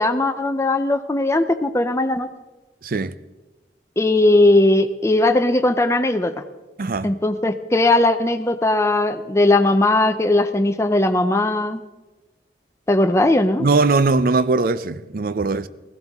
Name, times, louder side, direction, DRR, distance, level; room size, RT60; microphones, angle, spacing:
voice 1, 0.0-2.3 4.0-6.3 7.0-11.8 12.9-13.6, left 2 dB, 15° left, 0.5 m, -18 dB
voice 2, 2.8-3.1 6.8-7.1 13.6-15.7, right 3 dB, 55° right, 0.5 m, -20 dB
16.5 x 14.5 x 3.6 m
head